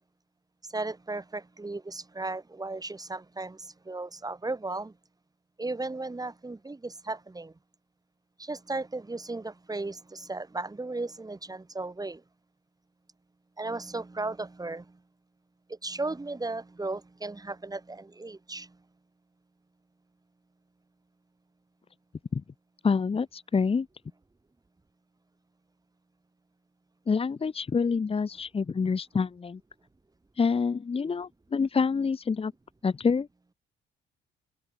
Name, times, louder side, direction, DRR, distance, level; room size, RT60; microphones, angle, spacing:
voice 1, 0.7-4.9 5.6-7.5 8.4-12.2 13.6-15.0 15.7-18.8, right 2 dB, 20° right, 5.6 m, -35 dB
voice 2, 22.8-23.9 27.1-29.6 30.4-32.5 32.8-33.3, left 5 dB, 30° left, 1.1 m, -27 dB
cardioid pair, 90°, 20 cm